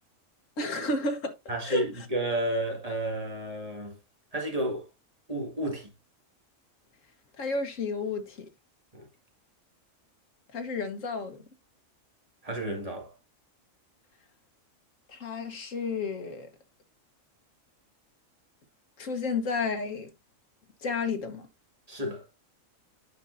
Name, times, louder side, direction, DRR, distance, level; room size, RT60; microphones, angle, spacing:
voice 1, 0.6-1.4 1.7-1.8 7.4-8.5 10.5-11.4 15.1-16.5 19.0-20.1 20.8-21.5, left 3 dB, 70° left, 1.7 m, -31 dB
voice 2, 1.5-4.0 4.3-4.9 5.3-5.9 8.9-9.1 12.4-13.1 21.9-22.2, right 1 dB, 25° right, 2.2 m, -31 dB
9.9 x 5.6 x 2.6 m
omnidirectional pair, 1.4 m